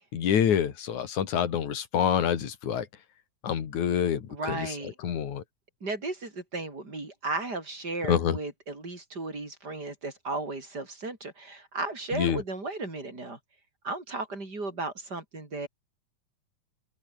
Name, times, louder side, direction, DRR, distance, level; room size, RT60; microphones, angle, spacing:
voice 1, 0.1-2.9 3.4-4.8 5.0-5.4 8.1-8.4 12.1-12.4, left 8 dB, 65° left, 3.7 m, -27 dB
voice 2, 4.3-4.9 5.8-13.4 13.8-15.7, right 3 dB, 30° right, 6.5 m, -35 dB
open air
omnidirectional pair, 3.7 m